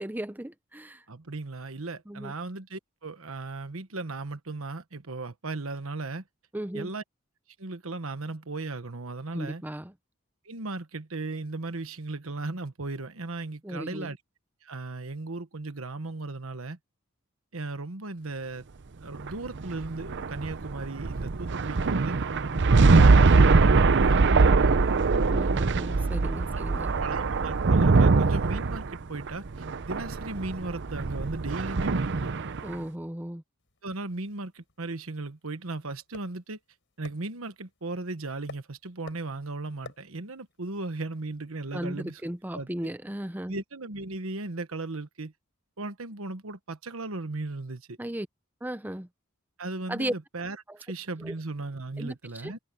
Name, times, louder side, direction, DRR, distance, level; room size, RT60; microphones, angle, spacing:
voice 1, 0.0-1.0 2.1-2.3 6.5-6.9 9.3-9.9 13.6-14.1 25.3-26.9 32.6-33.4 41.7-43.6 48.0-48.3 48.6-49.1 49.9-50.1 50.7-50.8 51.2-51.3 52.0-52.5, right 1 dB, 10° right, 0.8 m, -35 dB
voice 2, 1.1-6.2 6.7-7.0 7.6-9.6 10.4-14.2 14.6-16.8 17.5-18.7 19.0-22.2 22.5-24.8 26.5-26.7 27.0-29.5 29.9-32.4 33.8-36.6 37.0-42.2 42.5-42.7 43.5-45.3 45.8-48.0 49.6-52.6, right 2 dB, 75° right, 1.3 m, -36 dB
sound 1, 19.1-32.7, right 4 dB, 60° right, 0.7 m, -22 dB
sound 2, 33.6-42.4, left 3 dB, 60° left, 6.0 m, -54 dB
head